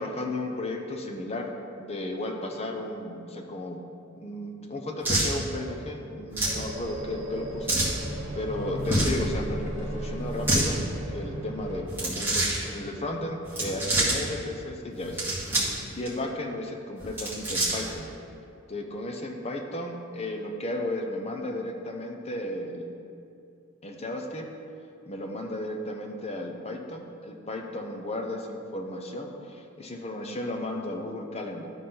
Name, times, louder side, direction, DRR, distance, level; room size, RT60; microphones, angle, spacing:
voice 1, 0.0-1.5 1.8-3.8 4.2-10.8 11.1-15.2 15.9-18.1 18.7-23.0 23.8-24.5 25.1-31.7, left 1 dB, 30° left, 2 dB, 0.7 m, -34 dB
sound 1, 5.0-5.3 6.3-6.6 7.7-8.0 8.8-9.2 10.3-10.7 11.9-12.6 13.5-14.2 15.0-15.8 16.1-16.2 17.0-17.9, right 1 dB, 10° right, 2.0 m, -26 dB
sound 2, 6.5-11.8, equal, 60° right, 1.4 m, -35 dB
12.5 x 4.2 x 3.9 m, 2.5 s
head